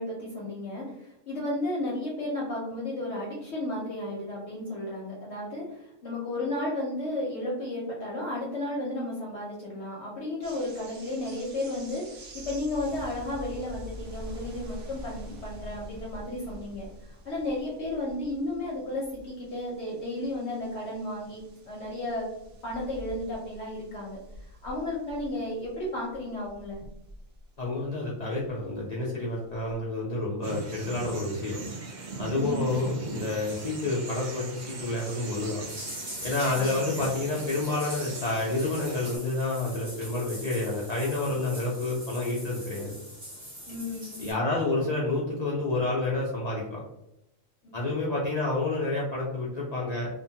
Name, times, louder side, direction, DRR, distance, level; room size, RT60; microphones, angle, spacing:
voice 1, 0.0-22.3 22.6-24.2 24.6-26.8 32.3-32.7 36.5-37.1 43.7-44.2, left 1 dB, 60° left, -4 dB, 0.9 m, -33 dB
sound 1, 10.4-29.0 29.3-29.8, left 1 dB, 75° right, 1.1 m, -46 dB
voice 2, 27.6-31.6 32.2-35.6 36.2-42.9 44.2-46.8 47.7-50.1, left 2 dB, 85° left, -5 dB, 0.3 m, -29 dB
sound 2, 30.4-39.2, right 3 dB, 55° right, 0.5 m, -39 dB
sound 3, 35.7-44.3, equal, 40° right, 0.8 m, -42 dB
2.9 x 2.2 x 2.6 m, 0.85 s
omnidirectional pair, 1.4 m